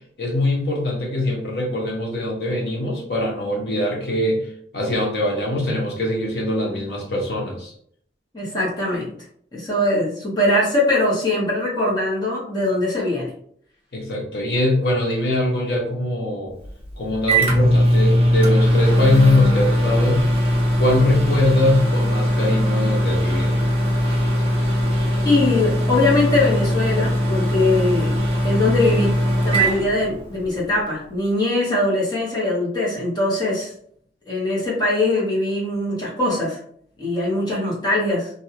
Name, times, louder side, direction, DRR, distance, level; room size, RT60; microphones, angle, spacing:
voice 1, 0.2-4.5 4.7-7.7 13.9-16.5 17.0-20.3 20.8-23.6, left 1 dB, 70° left, -2 dB, 1.0 m, -22 dB
voice 2, 8.3-9.1 9.5-13.3 25.2-28.2 28.4-29.1 29.4-33.7 34.3-36.6 37.0-38.3, left 2 dB, 25° left, -6 dB, 1.2 m, -21 dB
Microwave oven, 16.6-30.6, equal, 30° right, 0.7 m, -20 dB
2.7 x 2.3 x 2.8 m, 0.63 s
head